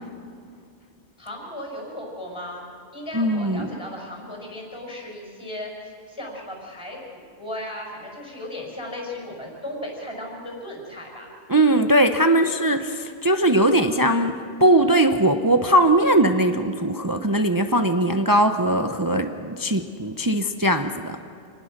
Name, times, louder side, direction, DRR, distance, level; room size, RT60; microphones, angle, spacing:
voice 1, 1.2-11.3, left 1 dB, 25° left, 0 dB, 5.9 m, -36 dB
voice 2, 3.1-3.7 11.5-14.3 14.6-21.2, right 1 dB, 20° right, 7 dB, 0.8 m, -20 dB
28.0 x 19.5 x 6.7 m, 2.4 s
omnidirectional pair, 1.2 m